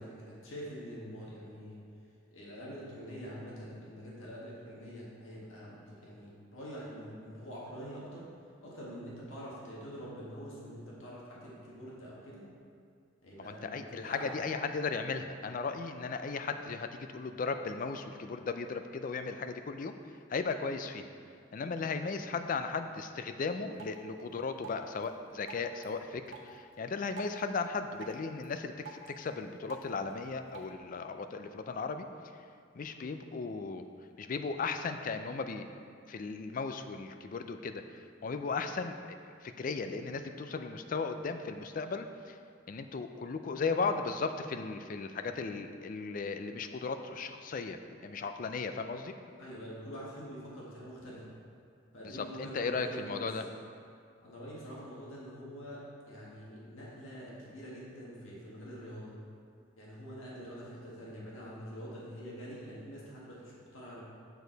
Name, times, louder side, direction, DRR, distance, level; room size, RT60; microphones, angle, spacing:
voice 1, 0.0-1.8 2.3-8.3 8.6-12.4 13.2-14.4 21.6-21.7 38.2-38.4 49.4-51.3 51.9-53.3 54.2-55.8 56.1-59.1 59.8-64.0, equal, 80° left, -6 dB, 1.8 m, -45 dB
voice 2, 13.4-19.9 20.3-21.1 21.5-32.1 32.3-32.4 32.7-33.8 34.2-35.7 36.1-42.4 42.7-49.1 52.0-53.4, left 4 dB, 40° left, 8 dB, 0.4 m, -36 dB
Drip, 23.7-30.7, right 4 dB, 65° right, 0.9 m, -52 dB
6.9 x 6.4 x 4.0 m, 2.3 s
head